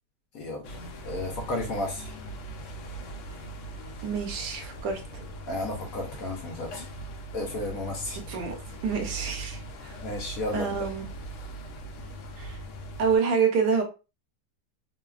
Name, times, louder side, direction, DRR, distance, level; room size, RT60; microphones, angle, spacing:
voice 1, 0.3-0.8 1.0-2.2 5.5-6.8 7.3-8.2 10.0-10.9, left 2 dB, 65° left, 1.0 m, -33 dB
sound 1, 0.6-13.2, right 2 dB, 80° left, 0.6 m, -40 dB
voice 2, 4.0-5.2 8.3-8.5 8.8-10.0 10.5-11.1 12.4-12.6 13.0-13.8, right 5 dB, 75° right, 1.3 m, -27 dB
3.1 x 2.2 x 2.3 m
omnidirectional pair, 1.9 m